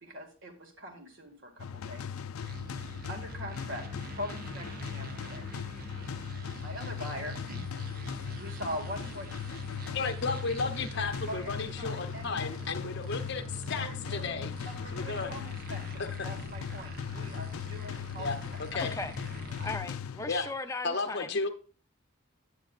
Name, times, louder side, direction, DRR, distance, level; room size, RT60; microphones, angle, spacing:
voice 1, 0.0-2.2 3.1-3.9 4.1-5.4 6.6-8.0 8.3-9.3 11.3-12.5 12.8-12.9 13.7-18.6 19.5-19.7, equal, 65° right, 1.9 m, -43 dB
sound 1, 1.6-20.6, left 7 dB, 90° left, 0.4 m, -39 dB
sound 2, 2.4-19.8, right 3 dB, 45° right, 0.8 m, -45 dB
voice 2, 9.9-14.5 14.9-15.3 18.2-18.9 20.3-20.5 20.8-21.5, left 4 dB, 55° left, 0.8 m, -33 dB
voice 3, 19.6-21.4, left 3 dB, 15° left, 0.5 m, -37 dB
10.0 x 8.9 x 2.4 m
head